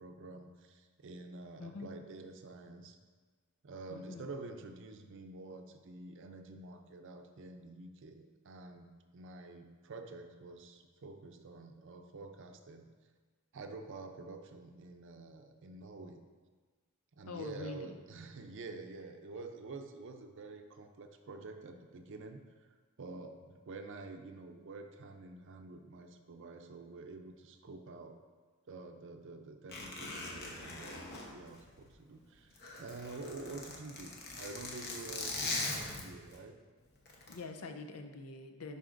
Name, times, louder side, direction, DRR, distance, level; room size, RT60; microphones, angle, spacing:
voice 1, 0.0-3.0 3.6-8.9 9.1-12.9 13.5-16.2 17.1-22.7 23.0-28.2 28.7-36.5, right 3 dB, 60° right, 6 dB, 0.5 m, -48 dB
voice 2, 1.6-1.9 3.9-4.3 17.3-17.9 37.3-38.8, left 3 dB, 75° left, 6 dB, 0.6 m, -45 dB
Zipper (clothing), 29.7-32.1 32.4-36.4 37.1-37.3, left 2 dB, 45° left, 1.0 m, -41 dB
10.5 x 4.1 x 2.5 m, 1.4 s
head